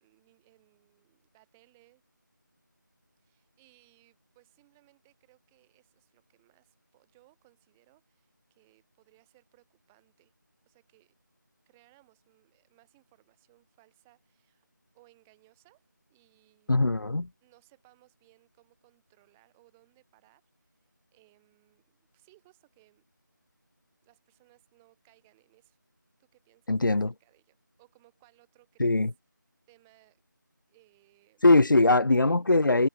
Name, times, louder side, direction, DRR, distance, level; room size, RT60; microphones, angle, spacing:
voice 1, 0.0-2.0 3.2-10.3 10.6-11.2 11.7-14.7 14.9-16.7 17.4-23.0 24.0-25.8 26.2-29.0 29.7-30.2 30.7-31.4 31.8-32.4, right 22 dB, 5° right, 3.0 m, -64 dB
voice 2, 16.7-17.3 26.7-27.1 28.8-29.1 31.4-32.9, left 2 dB, 75° left, 0.9 m, -21 dB
figure-of-eight pair, 175°, 11 cm